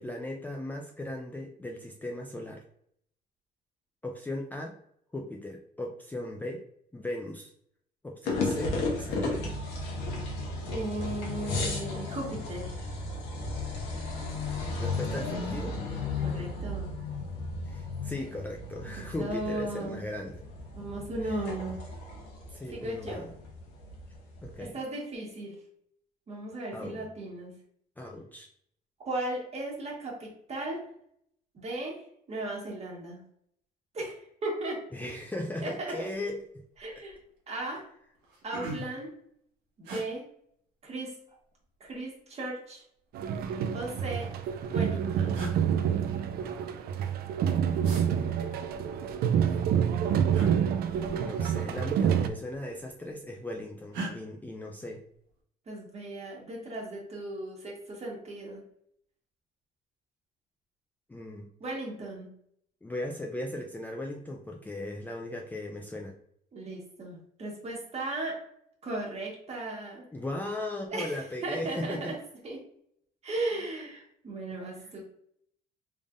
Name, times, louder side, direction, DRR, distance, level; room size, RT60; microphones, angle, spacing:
voice 1, 0.0-2.6 4.0-4.8 5.1-6.6 6.9-7.5 8.0-9.6 14.8-15.8 17.6-20.4 21.3-21.4 22.5-23.3 24.4-24.8 26.7-27.0 28.0-28.5 34.9-36.4 48.2-48.5 51.1-55.0 61.1-61.5 62.8-66.2 70.1-72.1, left 1 dB, 10° left, 0 dB, 0.4 m, -37 dB
sound 1, 8.3-24.6, left 3 dB, 90° left, 1.0 m, -35 dB
voice 2, 10.7-12.8 16.2-16.9 19.2-20.0 20.7-21.8 22.7-23.3 24.6-25.6 26.3-27.5 29.0-30.8 31.5-32.0 32.3-33.2 33.9-34.8 35.6-36.1 36.8-37.2 37.5-37.8 38.4-39.1 39.8-40.2 40.8-41.1 41.8-42.8 43.7-44.3 44.7-45.4 55.7-58.6 61.6-62.3 66.5-68.4 68.8-70.1 70.9-72.2 72.4-72.6 73.2-75.0, right 2 dB, 40° right, -2 dB, 1.5 m, -36 dB
sound 2, 36.2-36.4 36.7-37.2 37.8-37.9 38.1-39.1 39.8-40.0 41.3-41.9 43.1-43.9 44.8-44.9 45.3-45.6 47.8-48.1 50.3-50.5 51.9-52.1 52.4-53.0 53.9-54.1, right 2 dB, 85° right, 1.2 m, -39 dB
sound 3, 43.1-52.3, right 8 dB, 65° right, 0.4 m, -28 dB
3.6 x 3.4 x 2.5 m, 0.69 s
cardioid pair, 110°, 17 cm